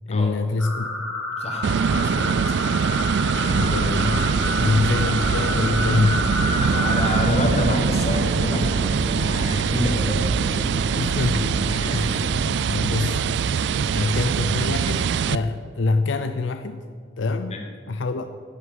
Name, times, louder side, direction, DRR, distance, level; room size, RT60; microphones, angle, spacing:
voice 1, 0.1-0.9 3.5-4.2 4.6-6.2 11.0-11.5 11.9-12.3 12.7-13.5 13.9-16.8 17.2-17.6 17.9-18.3, left 3 dB, 70° left, 9 dB, 0.5 m, -25 dB
sound 1, 0.6-7.2, left 1 dB, 5° left, 1.6 m, -29 dB
voice 2, 1.4-2.3 5.0-5.1 6.5-10.2 11.0-11.1 11.7-12.1 12.4-12.7 17.5-17.6, left 1 dB, 30° left, 2 dB, 1.6 m, -28 dB
sound 2, 1.6-15.4, right 6 dB, 60° right, 0.3 m, -23 dB
sound 3, 3.3-12.4, equal, 40° right, 1.4 m, -31 dB
10.5 x 8.2 x 7.9 m, 2.1 s
head